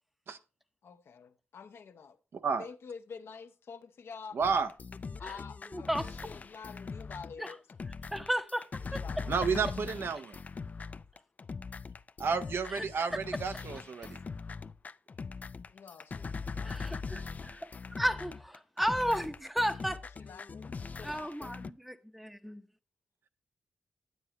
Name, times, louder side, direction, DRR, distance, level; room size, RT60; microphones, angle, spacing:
voice 1, 0.8-2.2 2.6-4.4 5.2-7.6 8.9-9.5 15.7-16.9 20.2-21.6, left 6 dB, 70° left, 0.7 m, -48 dB
voice 2, 4.3-4.7 9.3-10.4 12.2-14.2, right 5 dB, 65° right, 0.7 m, -31 dB
sound 1, 4.4-21.7, left 4 dB, 35° left, 0.3 m, -41 dB
voice 3, 5.7-6.1 7.4-7.5 8.1-8.7 8.9-9.0 12.7-13.2 16.6-20.0 21.0-22.6, equal, 5° right, 0.7 m, -34 dB
9.2 x 9.1 x 2.9 m
cardioid pair, 80°, 4 cm